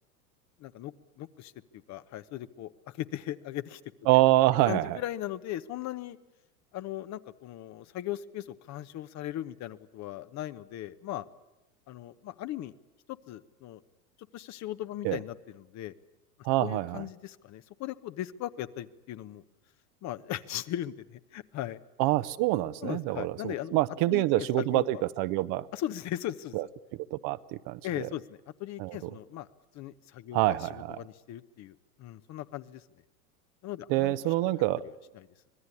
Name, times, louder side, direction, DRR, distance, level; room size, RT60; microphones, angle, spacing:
voice 1, 0.6-3.8 4.7-6.2 6.7-11.3 11.9-12.7 13.1-13.8 14.3-15.9 16.6-19.4 20.0-21.8 22.8-23.8 24.1-25.0 25.7-26.6 27.8-29.5 29.7-32.8 33.6-34.1 34.4-34.5 35.1-35.3, left 13 dB, 35° left, 14 dB, 1.0 m, -38 dB
voice 2, 4.1-5.0 15.0-15.2 16.4-17.0 22.0-25.7 26.5-26.6 27.1-28.1 28.8-29.1 30.3-31.0 33.9-34.8, right 17 dB, 45° right, 14 dB, 1.0 m, -26 dB
25.5 x 19.5 x 9.8 m, 0.99 s
hypercardioid pair, 95°, 45 cm